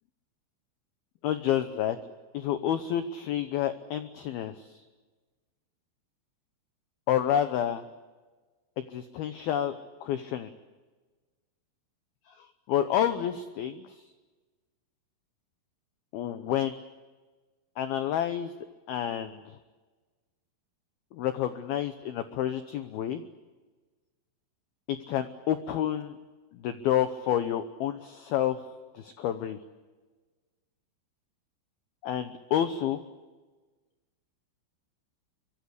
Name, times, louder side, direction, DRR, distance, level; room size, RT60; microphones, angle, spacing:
voice 1, 1.2-2.0 2.3-4.8 7.1-7.8 8.8-9.7 10.0-10.5 12.7-13.9 16.1-16.8 17.8-18.5 18.9-19.4 21.1-23.2 24.9-26.2 26.5-28.6 28.9-29.6 32.0-33.0, left 10 dB, 90° left, 10 dB, 2.1 m, -29 dB
26.0 x 24.0 x 8.3 m, 1.3 s
omnidirectional pair, 5.8 m